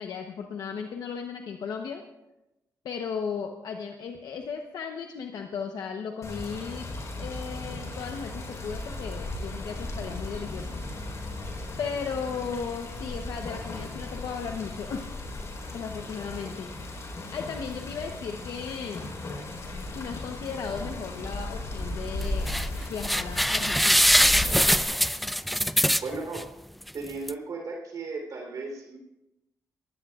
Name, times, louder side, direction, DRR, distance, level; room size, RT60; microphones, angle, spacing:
voice 1, 0.0-2.0 2.8-6.9 7.2-10.8 11.8-15.1 15.7-16.7 17.3-19.1 19.9-22.5 22.9-24.1, left 6 dB, 80° left, 3 dB, 1.0 m, -36 dB
Water, 6.2-24.8, left 2 dB, 45° left, 4.2 m, -36 dB
sound 1, 22.2-22.7 23.0-26.4 26.9-27.0 27.3-27.4, equal, ahead, 0.4 m, -22 dB
voice 2, 26.0-26.5 26.9-29.0, right 3 dB, 60° right, 2 dB, 3.6 m, -35 dB
22.0 x 16.0 x 2.5 m, 0.94 s
cardioid pair, 95°, 7 cm